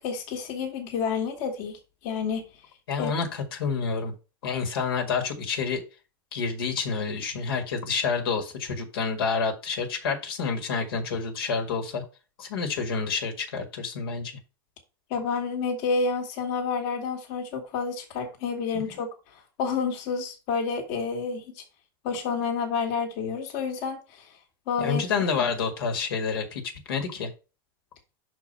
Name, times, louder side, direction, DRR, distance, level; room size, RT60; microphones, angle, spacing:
voice 1, 0.0-2.5 3.0-3.1 15.1-21.6 22.0-24.4 24.7-25.0 25.4-25.5, left 5 dB, 60° left, 1.7 m, -29 dB
voice 2, 2.9-4.1 4.4-5.8 6.3-12.0 12.4-14.3 24.8-26.6 26.9-27.3, left 5 dB, 85° left, 1.9 m, -28 dB
5.8 x 4.4 x 5.4 m
supercardioid pair, 120°, 12 cm